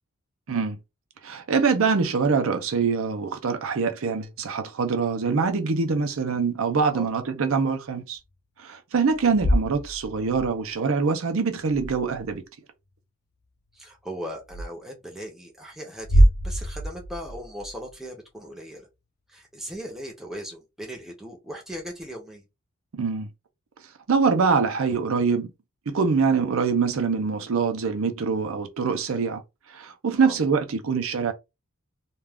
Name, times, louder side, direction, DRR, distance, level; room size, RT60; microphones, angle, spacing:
voice 1, 1.2-8.2 8.6-12.4 22.9-23.3 24.1-25.5 25.9-29.4 29.7-31.3, right 5 dB, 65° right, 0.5 m, -24 dB
sound 1, 9.1-10.5 11.7-12.4 14.5-14.7 15.9-17.9, equal, 45° left, 0.5 m, -24 dB
voice 2, 13.7-18.9 19.3-22.4 30.2-30.4, equal, ahead, 0.6 m, -38 dB
2.3 x 2.3 x 3.4 m
head